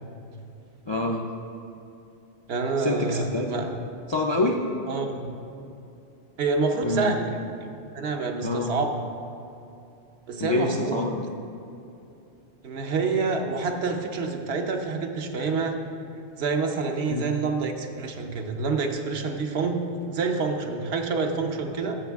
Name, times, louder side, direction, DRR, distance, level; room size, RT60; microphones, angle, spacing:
voice 1, 0.9-1.3 2.8-3.5 4.1-4.7 6.8-7.1 8.4-8.7 10.4-11.3 17.1-17.3, left 2 dB, 45° left, 0 dB, 0.3 m, -26 dB
voice 2, 2.5-3.8 4.9-5.3 6.4-7.4 7.9-9.0 10.3-11.1 12.6-15.8 16.4-22.0, right 4 dB, 70° right, 4 dB, 1.0 m, -27 dB
13.5 x 6.2 x 3.5 m, 2.8 s
omnidirectional pair, 1.1 m